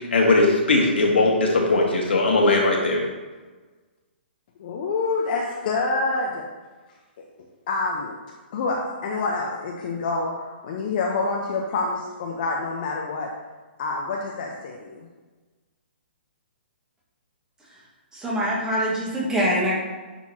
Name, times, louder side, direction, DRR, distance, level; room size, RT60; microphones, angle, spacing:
voice 1, 0.1-3.0, left 2 dB, 75° left, -1 dB, 1.8 m, -19 dB
voice 2, 4.6-6.5 7.2-7.3 7.7-8.2 8.5-13.3 13.8-15.1, left 3 dB, 50° left, -1 dB, 0.9 m, -27 dB
voice 3, 18.1-19.8, equal, 10° right, -5 dB, 1.8 m, -24 dB
9.7 x 4.4 x 2.9 m, 1.3 s
hypercardioid pair, 135°, 6 cm